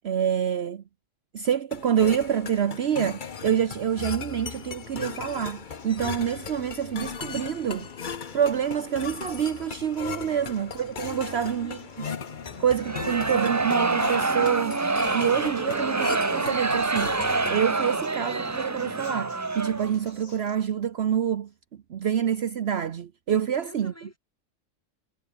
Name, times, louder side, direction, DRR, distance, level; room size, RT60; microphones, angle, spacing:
voice 1, 0.0-0.8 1.3-7.9 8.3-11.8 12.6-17.1 17.5-21.5 21.9-23.9, right 8 dB, 60° right, 1.0 m, -27 dB
sound 1, 1.7-17.7, left 6 dB, 40° left, 1.0 m, -37 dB
Acoustic guitar, 4.5-20.6, left 3 dB, 70° left, 3.5 m, -53 dB
voice 2, 10.2-10.5 11.0-12.1 23.3-24.2, equal, 10° left, 3.1 m, -47 dB
sound 2, 12.8-20.0, right 3 dB, 20° right, 0.4 m, -27 dB
omnidirectional pair, 1.3 m